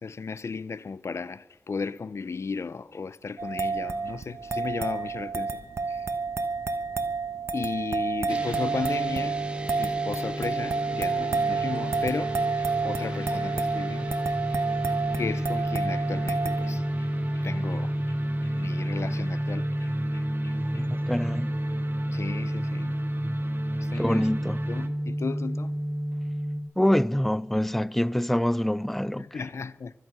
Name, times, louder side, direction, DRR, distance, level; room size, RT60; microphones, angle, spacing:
voice 1, 0.0-5.6 5.9-6.1 7.5-9.5 9.8-14.2 14.5-14.6 15.1-17.1 17.4-18.2 18.4-20.9 22.0-23.0 23.8-24.3 24.7-25.7 29.2-29.9, left 5 dB, 85° left, 0.5 m, -35 dB
sound 1, 3.4-16.7, right 4 dB, 80° right, 1.1 m, -30 dB
sound 2, 8.3-26.6, equal, 20° right, 1.8 m, -30 dB
sound 3, 10.6-24.9, right 2 dB, 50° right, 1.6 m, -39 dB
voice 2, 20.7-21.5 23.9-24.6 26.8-29.4, left 1 dB, 5° left, 0.4 m, -25 dB
23.5 x 9.2 x 6.0 m
wide cardioid pair, 65°, 5 cm